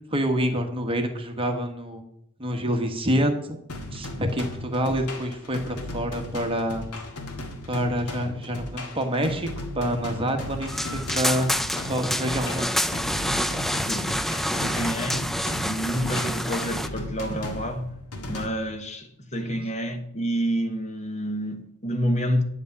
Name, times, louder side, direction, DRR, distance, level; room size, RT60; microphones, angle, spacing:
voice 1, 0.1-2.0 2.4-3.6 3.9-6.8 7.7-9.5 9.7-11.5 11.9-12.7 19.4-19.6, equal, 25° right, 1.3 m, -27 dB
sound 1, 3.7-18.5, left 1 dB, 90° left, 1.8 m, -36 dB
sound 2, 10.7-16.9, equal, ahead, 0.3 m, -27 dB
voice 2, 13.9-17.9 18.3-22.4, equal, 30° left, 1.2 m, -29 dB
9.5 x 5.3 x 8.1 m
head